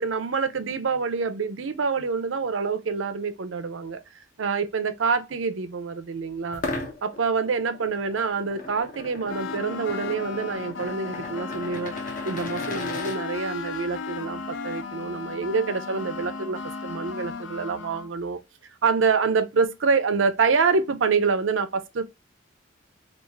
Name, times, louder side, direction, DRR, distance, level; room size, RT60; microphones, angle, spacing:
voice 1, 0.0-4.0 4.4-6.6 7.0-11.9 12.2-18.4 18.8-22.0, right 5 dB, 80° right, 0.6 m, -26 dB
sound 1, 6.5-13.2, left 2 dB, 45° left, 1.0 m, -37 dB
sound 2, 9.3-18.1, left 4 dB, 70° left, 0.5 m, -35 dB
3.5 x 2.4 x 3.1 m
head